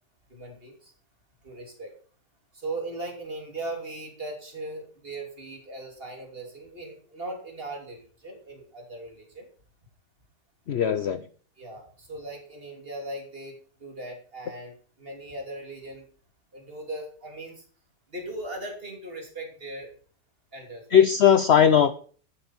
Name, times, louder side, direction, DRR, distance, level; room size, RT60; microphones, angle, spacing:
voice 1, 0.3-0.9 1.4-1.9 2.5-9.5 11.6-16.0 16.5-17.6 18.1-19.9 20.5-21.1, right 2 dB, 35° right, 2 dB, 3.2 m, -38 dB
voice 2, 10.7-11.2 20.9-22.0, left 8 dB, 60° left, 13 dB, 0.7 m, -18 dB
12.5 x 9.7 x 4.4 m, 0.43 s
omnidirectional pair, 1.8 m